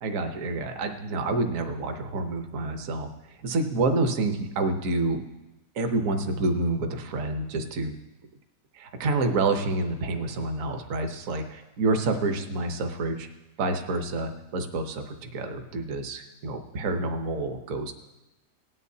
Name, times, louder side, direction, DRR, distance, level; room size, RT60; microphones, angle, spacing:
voice 1, 0.0-3.1 3.4-5.2 5.8-7.9 8.7-13.3 13.6-17.9, right 2 dB, 55° right, 6 dB, 1.2 m, -28 dB
18.0 x 9.5 x 2.7 m, 1.0 s
omnidirectional pair, 1.8 m